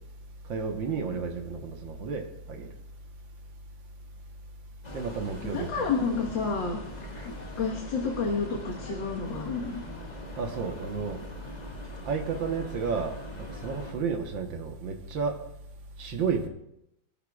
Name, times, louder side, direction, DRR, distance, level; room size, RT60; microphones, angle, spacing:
voice 1, 0.5-2.7 4.9-5.7 10.4-11.2 12.1-13.2 13.6-15.4 16.0-16.5, right 5 dB, 80° right, 3 dB, 2.0 m, -31 dB
sound 1, 4.8-13.9, left 1 dB, 20° left, 1.7 m, -42 dB
voice 2, 5.4-6.8 7.6-9.8, left 4 dB, 70° left, -1 dB, 2.2 m, -30 dB
25.5 x 11.5 x 2.4 m, 0.80 s
omnidirectional pair, 2.1 m